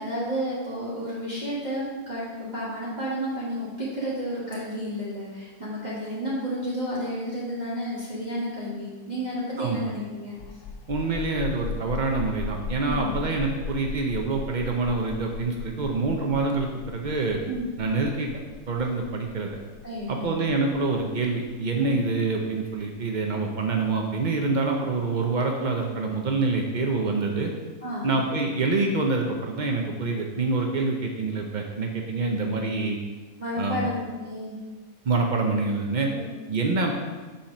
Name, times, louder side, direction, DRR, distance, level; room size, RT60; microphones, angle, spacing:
voice 1, 0.0-10.3 12.8-13.1 17.4-17.7 19.8-20.4 21.7-22.0 27.8-28.1 33.4-34.6 36.1-36.3, equal, 25° right, -9 dB, 1.6 m, -31 dB
sound 1, 10.3-23.7, left 4 dB, 75° left, 0.7 m, -37 dB
voice 2, 10.9-17.4 17.8-18.3 18.7-19.6 20.1-27.5 28.0-33.0 33.6-33.9 35.1-36.1 36.5-36.9, right 3 dB, 85° right, 2 dB, 0.4 m, -26 dB
5.8 x 4.3 x 5.9 m, 1.3 s
omnidirectional pair, 1.7 m